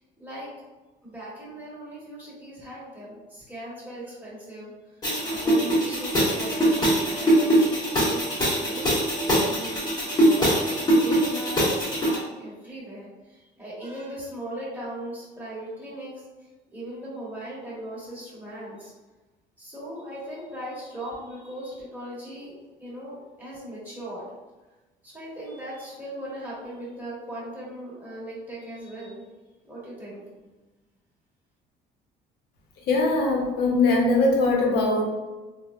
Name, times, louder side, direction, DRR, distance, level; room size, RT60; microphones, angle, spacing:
voice 1, 0.2-0.5 1.0-5.0 5.3-8.9 9.4-9.8 10.2-16.2 16.7-18.9 19.6-22.5 22.8-24.2 25.0-29.2 29.6-30.5, right 1 dB, 10° right, -8 dB, 1.3 m, -38 dB
sound 1, 5.0-12.2, right 1 dB, 25° left, 1.1 m, -22 dB
voice 2, 32.9-35.0, left 2 dB, 75° left, 0 dB, 0.8 m, -21 dB
3.4 x 2.2 x 2.4 m, 1.2 s
cardioid pair, 110°, 17 cm